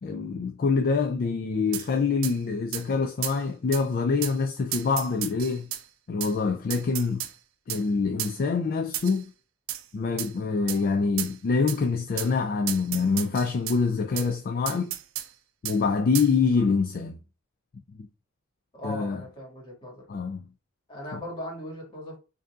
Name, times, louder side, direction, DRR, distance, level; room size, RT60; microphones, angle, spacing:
voice 1, 0.0-5.7 6.1-7.3 7.7-9.2 9.9-15.0 15.6-17.2 17.9-18.1 18.8-19.2 20.1-20.4 21.1-21.2, left 4 dB, 45° left, 0.3 m, -25 dB
sound 1, 1.7-1.9 2.2-2.4 2.7-2.9 3.2-3.4 3.7-3.8 4.2-4.4 4.7-5.8 6.2-6.3 6.7-7.3 7.7-7.8 8.2-8.4 8.9-9.2 9.7-9.8 10.2-10.3 10.7-10.8 11.2-11.3 11.7-11.8 12.2-12.3 12.7-13.8 14.2-14.3 14.7-15.3 15.7-15.8 16.1-16.3, right 12 dB, 75° right, 0.4 m, -33 dB
voice 2, 18.7-20.1 20.9-22.2, equal, 25° left, 1.7 m, -38 dB
5.1 x 2.7 x 2.4 m
head